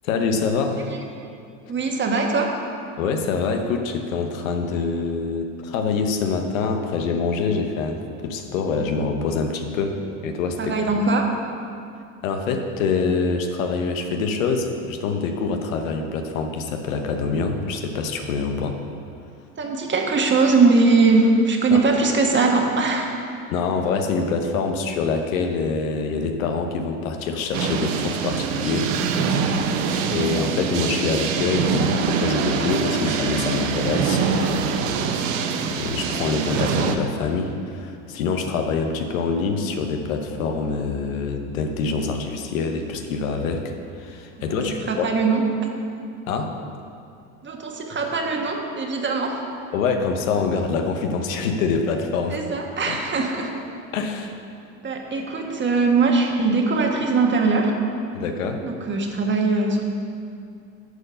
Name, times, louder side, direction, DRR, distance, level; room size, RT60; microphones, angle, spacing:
voice 1, 0.0-0.9 3.0-10.9 12.2-18.8 21.7-21.8 23.5-28.9 30.1-35.3 35.7-45.1 46.3-46.6 49.7-52.5 52.9-53.0 53.9-54.4 58.1-58.6, left 4 dB, 85° left, 5 dB, 1.0 m, -25 dB
voice 2, 1.7-2.6 10.6-11.3 19.6-23.1 44.5-45.8 47.4-49.4 52.3-53.5 54.8-57.8 58.6-59.9, right 3 dB, 30° right, 1 dB, 1.4 m, -21 dB
sound 1, 27.5-37.0, right 6 dB, 75° right, 0.8 m, -24 dB
9.4 x 4.5 x 6.7 m, 2.4 s
hypercardioid pair, 85°, 39 cm